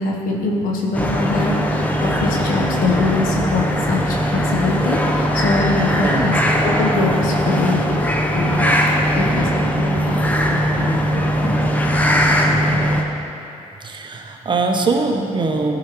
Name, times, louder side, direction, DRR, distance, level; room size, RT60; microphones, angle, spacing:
voice 1, 0.0-6.4 6.6-8.0 8.3-8.7 9.1-11.6 12.0-12.9, left 3 dB, 85° left, -1 dB, 1.0 m, -23 dB
sound 1, 0.9-13.0, equal, 10° left, 0.7 m, -19 dB
voice 2, 13.8-15.8, right 3 dB, 35° right, 3 dB, 0.8 m, -21 dB
12.0 x 4.8 x 3.0 m, 2.8 s
cardioid pair, 85°, 14 cm